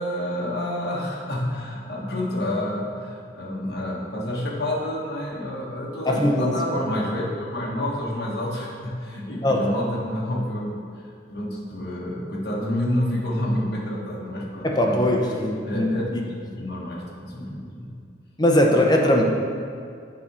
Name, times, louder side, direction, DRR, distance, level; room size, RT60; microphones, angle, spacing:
voice 1, 0.0-10.8 11.3-15.1 15.6-16.1 16.4-17.9, left 1 dB, 60° left, -4 dB, 1.3 m, -28 dB
voice 2, 6.1-6.5 9.4-9.6 14.6-16.2 18.4-19.2, left 1 dB, 20° left, 1 dB, 0.6 m, -20 dB
7.5 x 4.8 x 4.3 m, 2.3 s
head